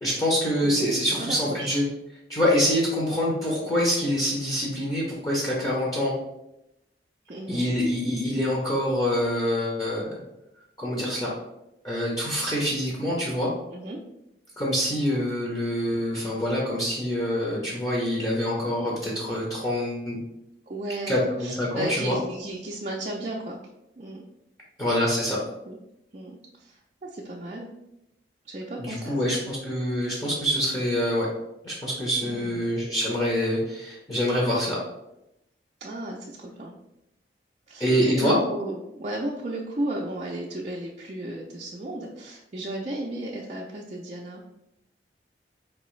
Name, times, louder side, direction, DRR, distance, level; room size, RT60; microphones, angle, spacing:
voice 1, 0.0-1.8 2.3-6.1 7.5-10.2 10.8-11.3 11.8-13.5 14.6-20.2 21.1-22.2 24.8-25.4 28.8-31.3 31.6-34.8 37.8-38.4, equal, 20° left, -6 dB, 0.8 m, -25 dB
voice 2, 1.1-1.7 7.3-7.6 13.4-14.0 20.7-23.6 24.0-24.2 25.7-25.8 26.1-27.7 28.4-29.4 32.2-32.7 35.8-36.7 37.7-37.9 38.2-44.4, right 1 dB, 40° right, -3 dB, 0.4 m, -34 dB
4.5 x 2.9 x 3.1 m, 0.87 s
head